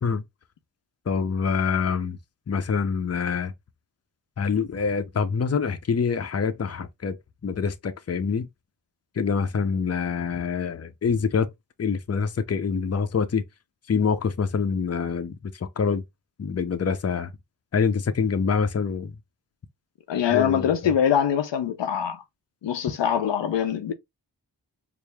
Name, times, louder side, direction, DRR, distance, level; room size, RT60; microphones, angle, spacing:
voice 1, 1.1-2.2 2.5-3.5 4.4-7.2 7.4-8.5 9.2-11.5 11.8-13.4 13.9-16.0 16.4-17.3 17.7-19.1 20.3-20.9, left 6 dB, 35° left, 0.6 m, -25 dB
voice 2, 20.1-22.2 22.6-23.9, left 8 dB, 85° left, 0.6 m, -23 dB
4.6 x 2.0 x 3.4 m
cardioid pair, 45°, 43 cm